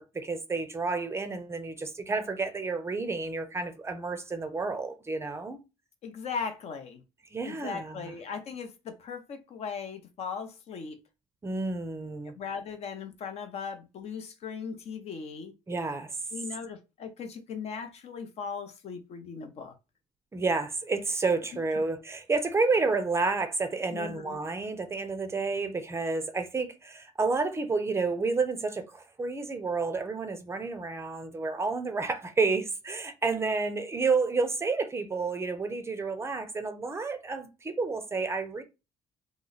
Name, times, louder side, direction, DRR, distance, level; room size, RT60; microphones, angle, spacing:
voice 1, 0.0-5.6 7.3-8.1 11.4-12.3 15.7-16.1 20.3-38.6, right 4 dB, 20° right, 0.5 m, -30 dB
voice 2, 6.0-7.0 7.4-11.0 12.4-15.5 16.3-19.7 23.9-24.4, left 6 dB, 50° left, 0.6 m, -38 dB
3.0 x 2.0 x 3.9 m
cardioid pair, 120°, 13 cm